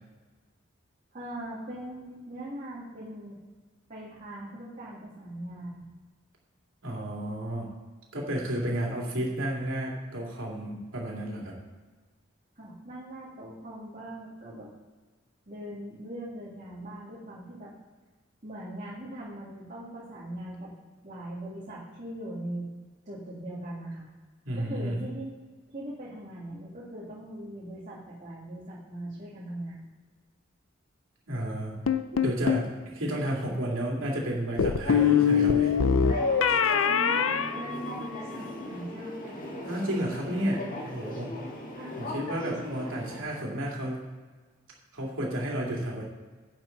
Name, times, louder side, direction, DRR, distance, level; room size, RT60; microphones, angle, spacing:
voice 1, 1.1-3.4 3.9-5.9 12.6-14.7 15.5-17.7 18.4-20.7 21.0-22.7 23.1-24.0 24.6-25.3 25.7-29.8 36.8-39.4 41.8-42.3 42.6-43.0, right 1 dB, 40° right, -8 dB, 2.3 m, -40 dB
voice 2, 6.8-7.7 8.1-11.5 24.4-25.0 31.3-31.7 32.1-32.7 32.9-35.7 39.6-41.3 42.0-44.0 44.9-46.0, right 1 dB, 75° right, -3 dB, 2.9 m, -32 dB
sound 1, 31.9-32.7 34.6-38.4, left 7 dB, 75° left, 0.6 m, -24 dB
sound 2, 34.8-43.2, left 1 dB, 45° left, 1.8 m, -39 dB
10.5 x 8.9 x 4.0 m, 1.4 s
head